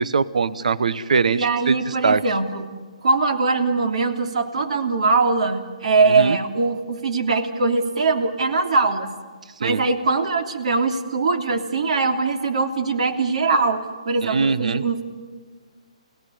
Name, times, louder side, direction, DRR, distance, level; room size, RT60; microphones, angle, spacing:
voice 1, 0.0-1.7 2.0-2.2 6.2-6.4 9.6-9.8 14.2-14.8, right 5 dB, 80° right, 16 dB, 1.0 m, -21 dB
voice 2, 1.3-2.7 3.0-9.1 9.6-15.0, right 3 dB, 60° right, 6 dB, 3.1 m, -21 dB
29.5 x 17.5 x 10.0 m, 1.5 s
hypercardioid pair, 160°, 4 cm